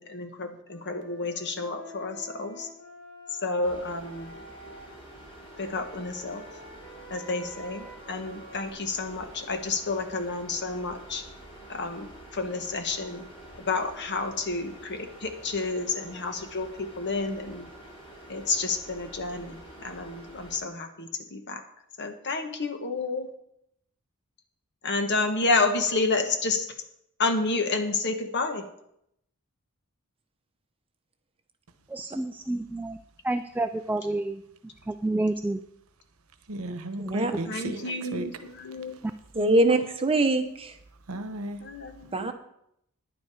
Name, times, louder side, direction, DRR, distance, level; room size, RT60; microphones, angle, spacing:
voice 1, 0.0-2.7 3.4-4.3 5.6-6.4 7.1-11.2 11.7-13.3 13.7-17.7 18.3-21.6 22.0-23.3 24.8-26.7 27.2-28.6 37.5-39.0 41.6-42.3, left 3 dB, 50° left, 6 dB, 1.3 m, -30 dB
Wind instrument woodwind instrument, 0.7-4.9 5.5-8.7, left 1 dB, 70° left, 3.7 m, -48 dB
sound 1, 3.6-20.6, right 1 dB, 25° left, 2.7 m, -47 dB
voice 2, 31.9-33.0 33.2-34.4 34.9-35.6, right 2 dB, 10° right, 8 dB, 0.3 m, -29 dB
voice 3, 36.5-38.3 41.1-41.6, right 1 dB, 70° right, 10 dB, 1.0 m, -34 dB
voice 4, 37.0-37.3 39.3-40.8 42.1-42.3, right 2 dB, 25° right, 6 dB, 1.0 m, -23 dB
10.5 x 9.7 x 4.9 m, 0.75 s
head